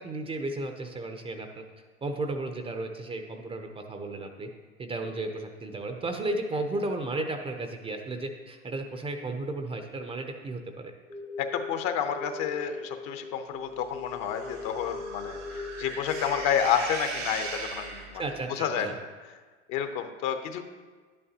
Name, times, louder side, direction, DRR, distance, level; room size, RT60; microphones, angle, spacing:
voice 1, 0.0-1.6 2.0-4.5 4.8-10.9 18.1-19.0, right 2 dB, 15° right, 5 dB, 0.6 m, -34 dB
sound 1, 11.1-11.7 12.0-16.4, left 5 dB, 90° left, 1.2 m, -39 dB
voice 2, 11.4-18.2 18.5-18.9 19.7-20.6, left 8 dB, 45° left, 8 dB, 0.8 m, -30 dB
sound 2, 14.1-18.4, right 3 dB, 85° right, 2.1 m, -38 dB
10.5 x 8.7 x 2.8 m, 1.5 s
hypercardioid pair, 90°, 37 cm